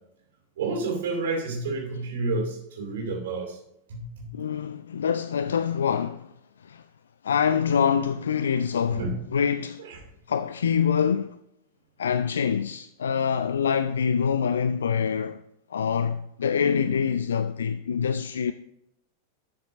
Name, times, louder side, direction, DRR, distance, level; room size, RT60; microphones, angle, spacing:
voice 1, 0.6-3.6 3.9-4.3 8.9-9.1, right 3 dB, 60° right, 2.4 m, -29 dB
voice 2, 4.3-6.3 6.6-6.8 7.2-9.0 9.3-9.8 10.3-11.4 12.0-15.4 15.7-18.5, left 7 dB, 65° left, 0.3 m, -25 dB
12.0 x 7.2 x 2.6 m
figure-of-eight pair, 90°, 0 cm